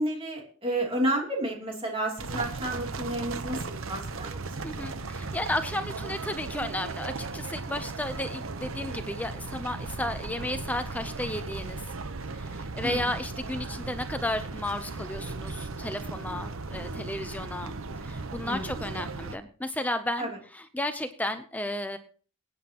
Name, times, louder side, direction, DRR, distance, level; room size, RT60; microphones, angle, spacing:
voice 1, 0.0-4.7 12.8-13.0 18.4-18.8 20.2-20.3, right 1 dB, 25° right, 0 dB, 3.0 m, -31 dB
sound 1, 2.2-19.4, right 3 dB, 80° right, 0.9 m, -37 dB
voice 2, 4.6-11.8 12.3-17.7 18.0-22.0, left 1 dB, 5° left, 8 dB, 0.6 m, -33 dB
22.5 x 9.5 x 2.9 m, 0.42 s
head